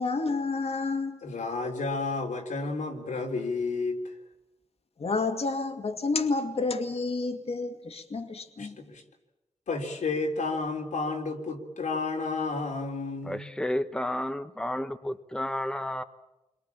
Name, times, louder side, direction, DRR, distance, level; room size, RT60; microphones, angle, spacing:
voice 1, 0.0-1.2 5.0-8.8, left 3 dB, 55° left, 6 dB, 2.2 m, -30 dB
voice 2, 1.2-4.1 8.6-9.0 9.7-13.5, left 3 dB, 85° left, 1 dB, 3.8 m, -31 dB
voice 3, 13.2-16.0, left 1 dB, 5° left, 8 dB, 1.1 m, -31 dB
28.5 x 23.0 x 7.2 m, 1.0 s
wide cardioid pair, 85°, 13 cm